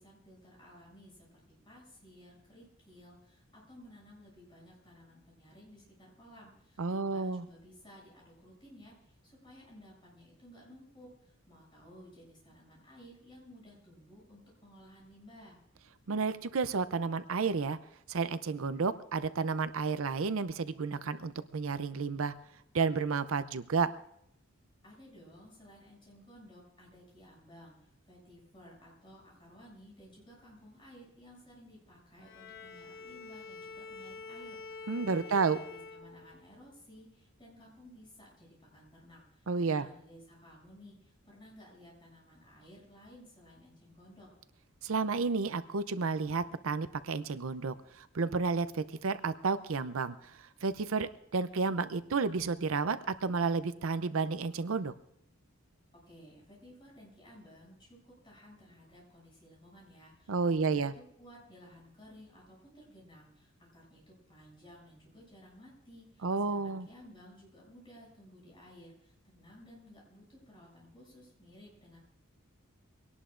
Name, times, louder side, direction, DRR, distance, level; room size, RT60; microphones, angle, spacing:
voice 1, 0.0-15.6 24.8-44.3 56.1-72.0, equal, 20° left, -3 dB, 7.1 m, -56 dB
voice 2, 6.8-7.4 16.1-17.8 18.1-22.3 22.7-23.9 34.9-35.6 39.5-39.9 44.8-54.9 60.3-60.9 66.2-66.9, right 4 dB, 65° right, 12 dB, 0.5 m, -31 dB
Bowed string instrument, 32.2-36.6, left 4 dB, 55° left, 1.1 m, -47 dB
23.5 x 18.0 x 2.5 m, 0.73 s
head